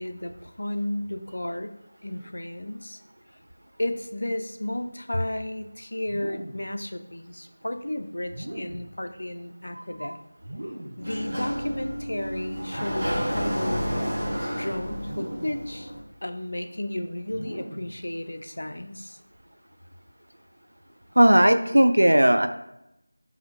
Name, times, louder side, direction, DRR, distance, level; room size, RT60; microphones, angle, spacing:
voice 1, 0.0-1.8 2.0-3.0 3.8-10.2 11.0-14.1 14.6-15.9 16.2-19.2, left 1 dB, 65° left, 8 dB, 0.4 m, -33 dB
sound 1, 6.0-6.7 8.2-9.0 10.4-11.1 12.6-13.4 15.0-15.7 17.3-18.0, right 1 dB, 65° right, 0.7 m, -39 dB
voice 2, 9.7-10.1 21.2-22.5, right 1 dB, 80° right, 9 dB, 0.4 m, -18 dB
Sliding door, 11.0-16.0, equal, 40° right, 1.3 m, -30 dB
4.8 x 2.7 x 3.0 m, 0.85 s
figure-of-eight pair, 170°, 0 cm